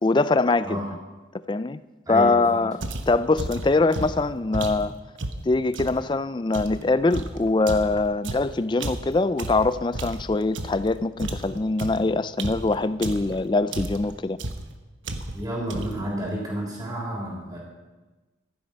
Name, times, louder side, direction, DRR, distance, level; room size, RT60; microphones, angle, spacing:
voice 1, 0.0-0.8 1.5-1.8 2.1-2.8 3.1-4.9 5.5-14.4, left 3 dB, 25° left, 14 dB, 0.3 m, -23 dB
voice 2, 2.1-2.6 15.3-17.6, equal, 20° right, -3 dB, 3.5 m, -30 dB
sound 1, 2.8-6.0 6.5-10.9 11.2-13.4 13.7-14.1 14.4-14.7 15.0-15.4 15.7-16.1, right 2 dB, 85° right, 1.2 m, -33 dB
14.5 x 11.5 x 5.3 m, 1.2 s
head